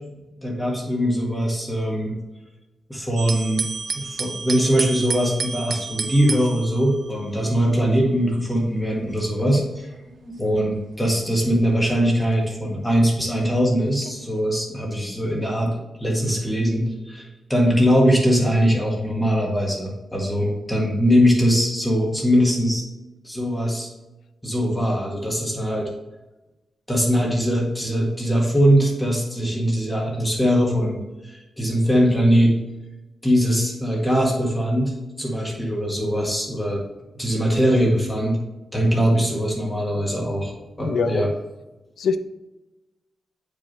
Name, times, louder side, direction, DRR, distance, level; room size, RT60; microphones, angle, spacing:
voice 1, 0.1-2.2 2.9-3.6 3.9-9.9 10.2-22.8 23.2-23.9 24.4-25.9 26.9-31.0 31.2-32.6 33.2-36.8 37.1-38.4 38.7-40.5 40.8-41.3, equal, 10° left, -2 dB, 1.5 m, -21 dB
sound 1, 3.2-13.3 13.9-14.4, right 5 dB, 55° right, 0.6 m, -33 dB
voice 2, 40.8-41.2 42.0-42.2, left 5 dB, 80° left, 9 dB, 0.5 m, -23 dB
8.1 x 5.2 x 3.1 m, 1.0 s
wide cardioid pair, 145°, 0 cm